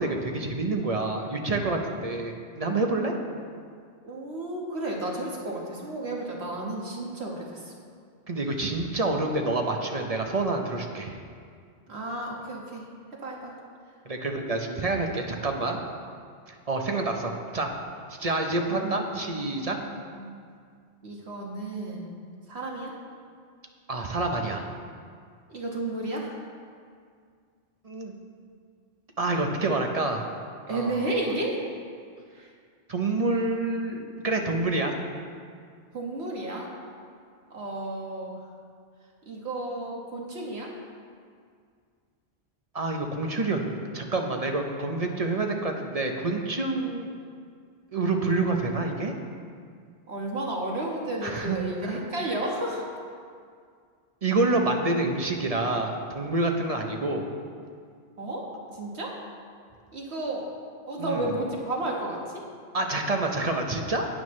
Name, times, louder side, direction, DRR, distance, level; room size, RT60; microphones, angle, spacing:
voice 1, 0.0-3.1 8.3-11.2 14.1-15.8 16.5-17.7 18.1-19.8 23.9-24.7 27.8-28.2 29.2-30.3 30.7-31.1 32.9-35.0 42.7-47.1 47.9-49.1 51.2-52.0 54.2-57.3 61.0-61.3 62.7-64.1, right 2 dB, 40° right, 3 dB, 0.8 m, -28 dB
voice 2, 4.0-7.7 11.9-12.9 13.2-13.5 18.7-19.4 19.9-20.3 21.0-22.2 22.5-22.9 25.5-26.4 30.7-31.6 32.3-32.5 35.9-36.7 37.5-38.4 39.3-40.7 50.1-52.9 58.2-59.2 59.9-60.5 60.9-62.4, right 2 dB, 80° right, -2 dB, 1.8 m, -32 dB
12.5 x 9.1 x 3.2 m, 2.1 s
omnidirectional pair, 1.1 m